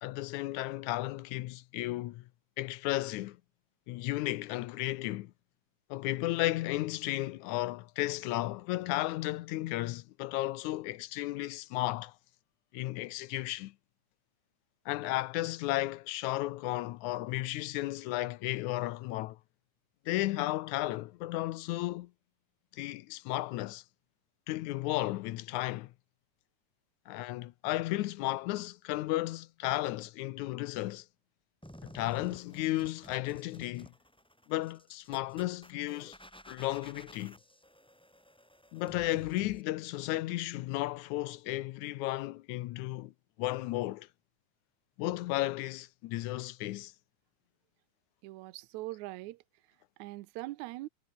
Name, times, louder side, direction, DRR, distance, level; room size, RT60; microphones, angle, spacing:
voice 1, 0.0-2.3 2.6-3.4 3.9-5.3 5.9-12.1 12.7-13.7 14.9-19.4 20.1-22.1 22.7-23.8 24.5-25.9 27.1-31.1 31.8-33.9 34.5-36.2 36.5-37.4 38.7-43.1 43.4-44.1 45.0-46.9, left 17 dB, 75° left, 2.0 m, -34 dB
sound 1, 31.6-39.6, equal, ahead, 2.4 m, -53 dB
voice 2, 48.2-49.4 50.0-50.9, right 18 dB, 75° right, 2.0 m, -41 dB
omnidirectional pair, 3.7 m